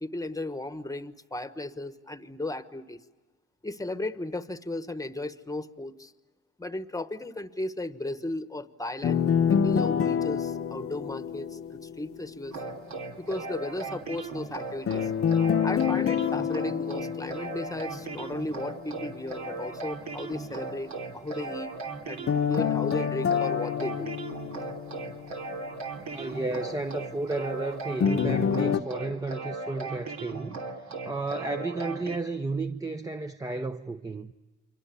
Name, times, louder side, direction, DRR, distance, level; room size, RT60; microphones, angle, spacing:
voice 1, 0.0-3.0 3.6-6.1 6.6-12.6 13.1-15.1 15.6-21.8 22.1-24.2, left 2 dB, 10° left, 1.3 m, -35 dB
sound 1, 9.0-12.1 14.9-18.1 22.3-25.3 28.0-28.8, left 7 dB, 45° left, 1.0 m, -27 dB
sound 2, 12.5-32.2, right 3 dB, 70° right, 3.0 m, -38 dB
voice 2, 26.0-34.4, right 3 dB, 10° right, 0.8 m, -33 dB
29.0 x 24.0 x 7.0 m
cardioid pair, 90°, 30 cm